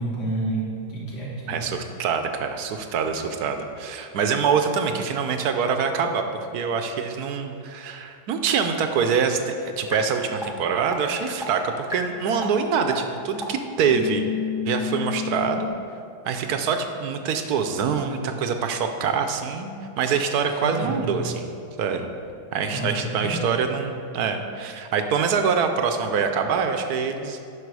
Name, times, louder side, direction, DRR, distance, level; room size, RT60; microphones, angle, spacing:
voice 1, 0.0-1.7 20.6-21.0 22.7-23.7, right 2 dB, 80° left, -6 dB, 2.7 m, -29 dB
voice 2, 1.5-14.2 14.6-15.7 16.2-21.5 21.8-22.1 22.5-27.4, right 6 dB, 75° right, 6 dB, 1.2 m, -25 dB
sound 1, 9.9-10.0 10.4-10.5 10.9-11.0 11.4-11.5 11.9-12.0 12.4-12.5 12.9-13.0 13.4-13.5 13.9-15.7, left 7 dB, 5° right, 0.6 m, -29 dB
10.0 x 6.1 x 4.8 m, 2.5 s
omnidirectional pair, 1.7 m